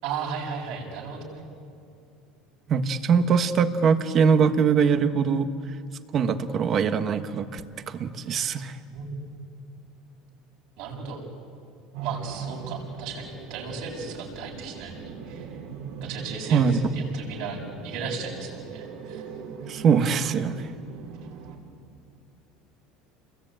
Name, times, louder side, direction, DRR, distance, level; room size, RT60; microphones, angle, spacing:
voice 1, 0.0-1.4 8.9-9.3 10.8-11.2 12.0-15.5 16.0-16.7 16.9-19.2, right 5 dB, 65° right, 0 dB, 7.5 m, -35 dB
voice 2, 2.7-5.5 6.1-7.6 7.9-8.8 16.5-16.8 19.7-20.7, right 6 dB, 35° right, 9 dB, 1.4 m, -22 dB
sound 1, 11.9-21.6, right 5 dB, 85° right, 7.3 m, -40 dB
30.0 x 22.0 x 9.1 m, 2.4 s
cardioid pair, 145°, 0 cm